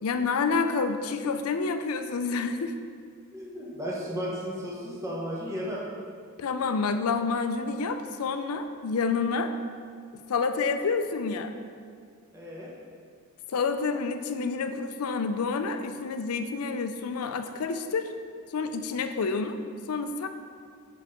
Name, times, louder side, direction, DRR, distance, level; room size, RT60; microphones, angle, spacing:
voice 1, 0.0-2.7 6.4-9.5 10.3-11.5 13.5-18.1 18.5-19.6 19.9-20.3, left 4 dB, 85° left, 8 dB, 0.5 m, -28 dB
voice 2, 3.3-5.8 12.3-12.7, equal, 15° right, -5 dB, 1.0 m, -34 dB
5.5 x 5.2 x 5.0 m, 2.1 s
head